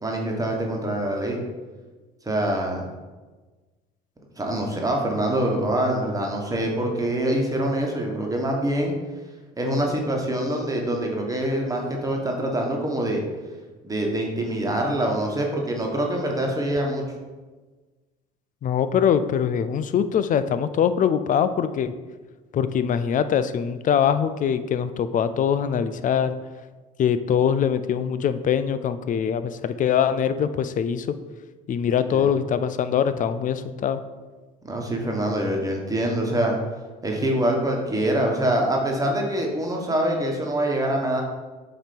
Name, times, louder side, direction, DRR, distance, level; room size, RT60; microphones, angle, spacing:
voice 1, 0.0-1.4 2.2-2.8 4.4-8.9 9.6-13.2 13.8-17.0 32.1-32.3 34.6-36.6 37.0-41.2, right 1 dB, 15° right, 0 dB, 1.4 m, -25 dB
voice 2, 18.6-21.9 22.5-26.3 27.0-31.1 31.7-34.0, left 8 dB, 40° left, 12 dB, 0.5 m, -23 dB
7.3 x 3.0 x 5.3 m, 1.3 s
supercardioid pair, 85°, 20 cm